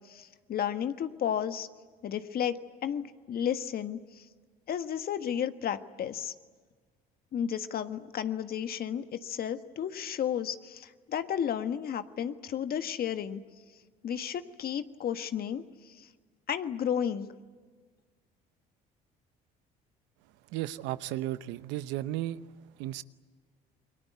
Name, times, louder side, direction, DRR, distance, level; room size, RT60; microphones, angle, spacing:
voice 1, 0.1-1.7 2.0-4.2 4.7-6.3 7.3-13.4 14.0-16.1 16.5-17.3, left 9 dB, 55° left, 1.5 m, -33 dB
voice 2, 20.5-22.4 22.8-23.0, right 14 dB, 75° right, 0.9 m, -34 dB
29.0 x 23.0 x 8.3 m
hypercardioid pair, 65°, 19 cm